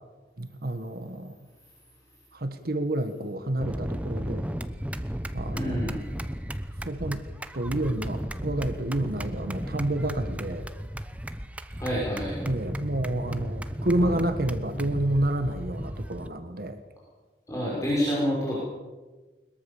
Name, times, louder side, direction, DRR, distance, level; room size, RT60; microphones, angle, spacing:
voice 1, 0.4-1.4 2.3-4.5 5.3-5.9 6.8-7.2 7.5-10.7 12.4-16.8, right 1 dB, 55° right, 9 dB, 1.5 m, -29 dB
sound 1, 3.6-16.3, equal, 10° right, 1.0 m, -34 dB
voice 2, 5.5-6.0 11.8-12.4 17.5-18.6, equal, 20° left, -5 dB, 6.0 m, -28 dB
22.0 x 22.0 x 7.2 m, 1.3 s
head